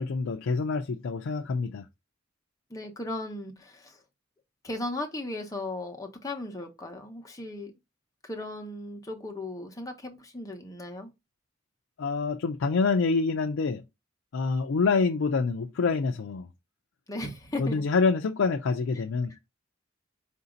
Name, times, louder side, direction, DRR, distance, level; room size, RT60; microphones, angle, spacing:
voice 1, 0.0-1.9 12.0-13.8 14.3-16.5 17.6-19.4, left 4 dB, 75° left, 0.4 m, -26 dB
voice 2, 2.7-4.0 4.6-7.7 8.2-11.1 17.1-17.8 19.0-19.1, left 2 dB, 20° left, 1.0 m, -36 dB
4.9 x 2.6 x 3.8 m
head